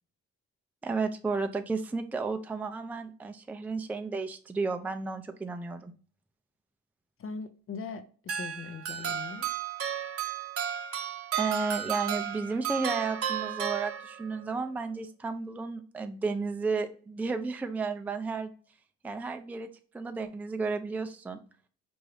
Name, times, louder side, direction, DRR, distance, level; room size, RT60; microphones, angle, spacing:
voice 1, 0.8-5.9 11.4-18.5 19.0-19.7 19.9-21.4, right 4 dB, 5° right, 0.4 m, -33 dB
voice 2, 7.2-9.5, left 5 dB, 45° left, 0.6 m, -40 dB
sound 1, 8.3-14.4, right 9 dB, 50° right, 0.7 m, -33 dB
4.5 x 2.6 x 3.2 m
cardioid pair, 90°, 30 cm